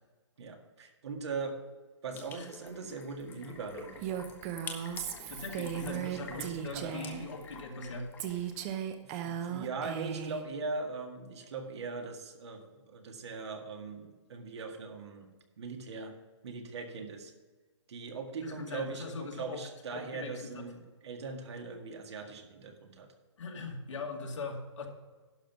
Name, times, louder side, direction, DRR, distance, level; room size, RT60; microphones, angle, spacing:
voice 1, 0.4-1.6 2.0-4.3 5.7-7.1 9.0-15.3 15.6-16.1 16.4-17.3 17.9-23.1, right 4 dB, 65° right, 4 dB, 1.8 m, -40 dB
sound 1, 2.1-8.7, left 4 dB, 15° left, 1.1 m, -48 dB
Female speech woman speaking, 4.0-7.3 8.2-10.4, right 9 dB, 30° right, 0.8 m, -37 dB
voice 2, 5.3-8.1 18.4-19.6 19.9-20.7 23.4-24.9, left 3 dB, 85° left, 1 dB, 2.3 m, -41 dB
11.5 x 5.4 x 5.9 m, 1.3 s
hypercardioid pair, 150°, 15 cm